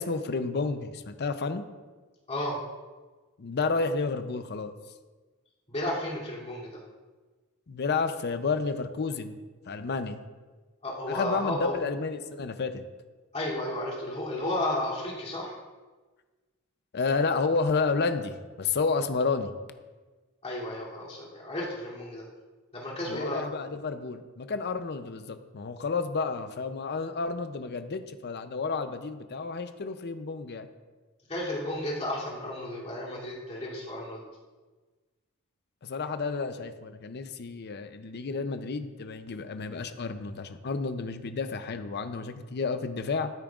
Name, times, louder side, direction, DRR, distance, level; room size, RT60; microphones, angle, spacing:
voice 1, 0.0-1.6 3.4-4.7 7.7-9.4 9.7-10.2 11.1-12.8 16.9-19.5 23.1-30.7 35.8-43.3, left 4 dB, 50° left, 9 dB, 0.5 m, -31 dB
voice 2, 2.3-2.6 5.7-6.8 10.8-11.8 13.3-15.6 20.4-22.2 22.7-23.4 31.3-34.2, left 1 dB, 30° left, -6 dB, 2.8 m, -33 dB
13.5 x 8.9 x 2.4 m, 1.3 s
head